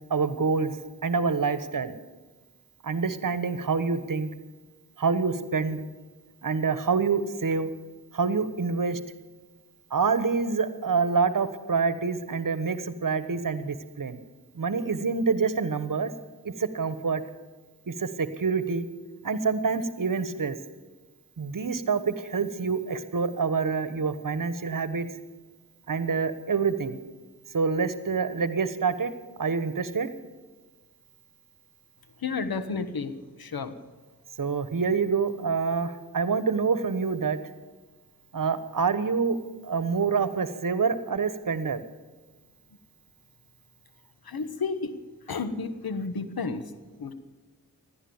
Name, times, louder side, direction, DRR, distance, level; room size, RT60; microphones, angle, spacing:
voice 1, 0.1-0.7 1.0-2.0 2.8-4.3 5.0-5.8 6.4-7.7 8.1-9.0 9.9-14.2 14.5-16.1 16.4-17.2 17.9-18.9 19.2-20.6 21.4-25.1 25.9-27.0 27.5-29.1 29.4-30.1 34.4-37.4 38.3-39.4 39.6-41.8, right 5 dB, 60° right, 12 dB, 1.3 m, -26 dB
voice 2, 32.2-33.1 33.4-33.7 44.3-45.0 45.3-46.7 47.0-47.1, left 4 dB, 75° left, 10 dB, 1.4 m, -31 dB
16.0 x 11.5 x 7.2 m, 1.3 s
cardioid pair, 40°, 37 cm